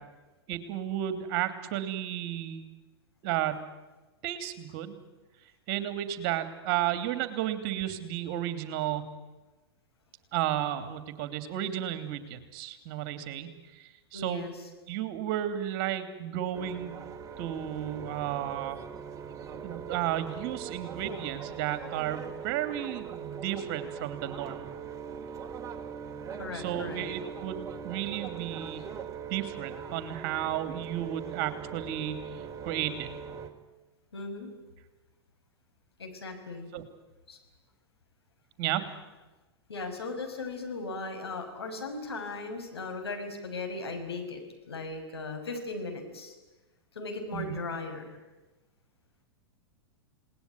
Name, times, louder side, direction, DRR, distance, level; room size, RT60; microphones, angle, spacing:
voice 1, 0.5-2.7 3.2-3.6 4.2-5.0 5.7-9.1 10.3-14.4 14.9-16.9 17.4-18.8 19.6-24.7 26.5-28.8 29.3-33.1 36.7-36.8 38.6-38.8 47.3-47.6, right 12 dB, 45° right, 9 dB, 3.0 m, -33 dB
voice 2, 14.1-14.5 26.3-27.0 34.1-34.5 36.0-36.7 37.3-37.4 39.7-46.4 46.9-48.2, left 3 dB, 75° left, 4 dB, 6.2 m, -37 dB
sound 1, 16.5-33.5, right 7 dB, 25° right, 3.0 m, -41 dB
29.5 x 19.5 x 9.6 m, 1.1 s
figure-of-eight pair, 95°, 13 cm